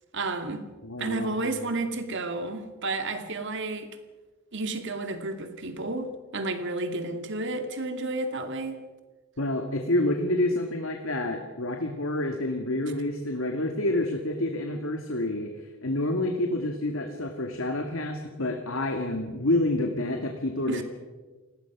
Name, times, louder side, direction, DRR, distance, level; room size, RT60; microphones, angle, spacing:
voice 1, 0.1-0.6 1.0-3.9 4.5-8.8 20.7-20.8, right 2 dB, 65° right, 7 dB, 2.4 m, -31 dB
voice 2, 0.8-1.3 9.4-15.5 15.8-20.8, left 1 dB, 85° left, 3 dB, 2.2 m, -28 dB
28.5 x 20.0 x 6.1 m, 1.3 s
head